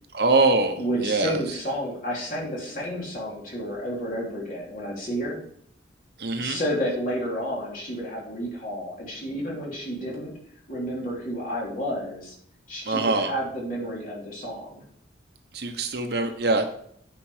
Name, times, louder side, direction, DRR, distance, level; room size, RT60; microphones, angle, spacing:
voice 1, 0.1-1.4 6.2-6.6 12.8-13.3 15.5-16.6, right 3 dB, 55° right, 6 dB, 1.0 m, -23 dB
voice 2, 0.7-5.4 6.4-10.3 10.7-12.3 12.7-14.8, equal, 45° left, -4 dB, 3.2 m, -31 dB
8.8 x 5.2 x 4.9 m, 0.65 s
head